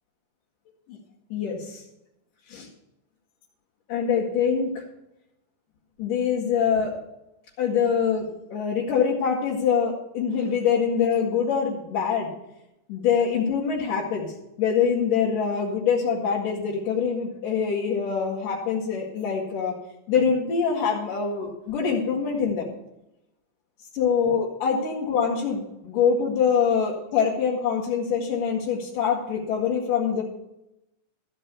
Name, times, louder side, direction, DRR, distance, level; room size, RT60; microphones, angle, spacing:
voice 1, 1.3-1.8 2.5-2.7 3.9-4.8 6.0-7.0 7.6-12.3 12.9-14.3 14.6-19.8 20.1-22.7 23.9-30.2, left 6 dB, 80° left, -6 dB, 3.4 m, -24 dB
14.0 x 5.3 x 8.0 m, 0.86 s
omnidirectional pair, 3.7 m